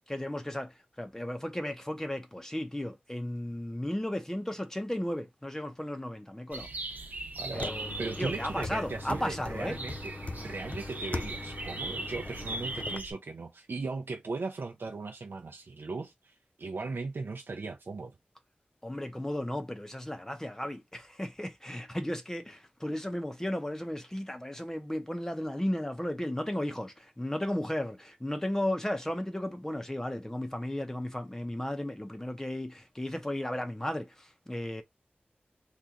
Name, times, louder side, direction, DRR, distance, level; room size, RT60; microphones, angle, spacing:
voice 1, 0.1-6.7 7.5-9.8 18.8-34.8, left 1 dB, 15° left, 0.7 m, -35 dB
sound 1, 6.5-13.1, right 2 dB, 50° right, 1.0 m, -40 dB
voice 2, 7.4-7.7 8.0-18.1, right 3 dB, 70° right, 0.6 m, -38 dB
sound 2, 7.5-13.0, left 3 dB, 40° left, 0.4 m, -40 dB
2.9 x 2.5 x 3.7 m
wide cardioid pair, 60°, 4 cm